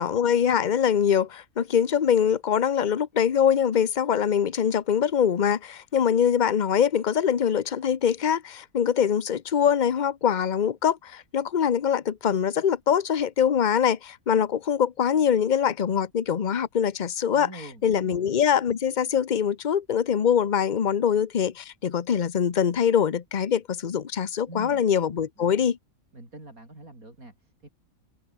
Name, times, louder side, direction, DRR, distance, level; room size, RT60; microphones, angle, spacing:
voice 1, 0.0-17.5 17.8-25.8, left 8 dB, 40° left, 0.9 m, -23 dB
voice 2, 17.3-18.3 24.5-24.8 25.4-25.6 26.1-27.7, right 2 dB, 80° right, 7.2 m, -44 dB
omnidirectional pair, 1.5 m